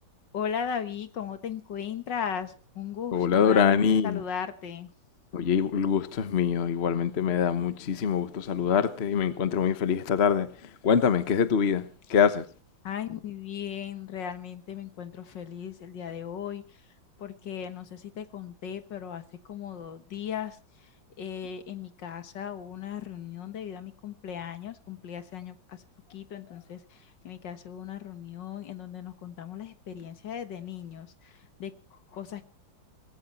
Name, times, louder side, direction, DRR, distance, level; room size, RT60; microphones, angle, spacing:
voice 1, 0.3-4.9 12.8-16.8 17.2-20.9 21.2-25.8 26.1-32.5, left 8 dB, 70° left, 2.0 m, -37 dB
voice 2, 3.1-4.2 5.3-10.5 10.8-11.8 12.1-12.4, left 7 dB, 40° left, 1.2 m, -24 dB
19.5 x 16.0 x 4.3 m
omnidirectional pair, 2.1 m